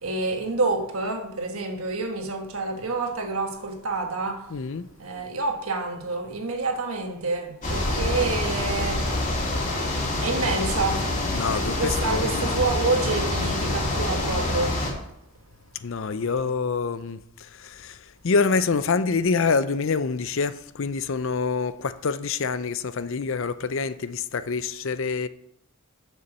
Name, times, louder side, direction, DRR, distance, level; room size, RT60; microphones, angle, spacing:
voice 1, 0.0-4.4 5.0-9.1 10.2-11.2 11.8-14.8, right 3 dB, 75° right, 1.5 m, -28 dB
voice 2, 4.5-4.9 11.3-12.6 15.8-17.2 17.6-18.0 18.2-25.3, left 4 dB, 60° left, 0.5 m, -26 dB
sound 1, 7.6-14.9, left 2 dB, 35° left, 2.7 m, -26 dB
7.2 x 6.9 x 6.6 m
head